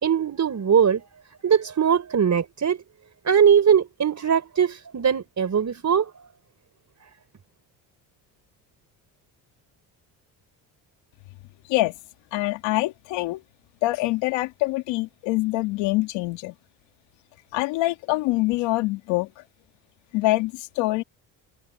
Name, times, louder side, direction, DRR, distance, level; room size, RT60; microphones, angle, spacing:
voice 1, 0.0-1.1 1.4-2.8 3.2-6.1, right 7 dB, 40° right, 4.2 m, -21 dB
voice 2, 12.3-13.4 13.8-16.5 17.5-19.4 20.1-21.0, left 19 dB, 90° left, 2.3 m, -25 dB
supercardioid pair, 75°, 43 cm